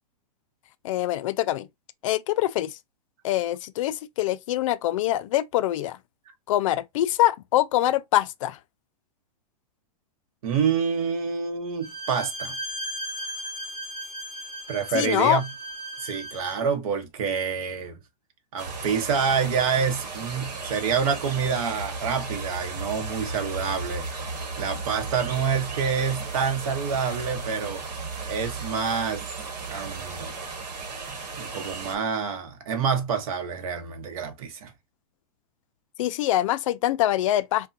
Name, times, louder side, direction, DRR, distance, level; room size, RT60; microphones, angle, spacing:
voice 1, 0.8-1.7 2.0-2.8 3.2-6.0 6.5-8.6 14.9-15.4 36.0-37.7, left 14 dB, 55° left, 0.4 m, -24 dB
voice 2, 10.4-12.6 14.7-15.5 16.0-18.0 18.5-24.1 24.6-28.0 28.3-29.2 29.7-30.3 31.4-34.7, right 6 dB, 60° right, 1.0 m, -27 dB
Bowed string instrument, 11.8-16.7, right 1 dB, 20° right, 1.9 m, -36 dB
sound 1, 18.6-32.0, right 3 dB, 85° right, 1.1 m, -35 dB
3.4 x 2.2 x 2.6 m
hypercardioid pair, 145°, 20 cm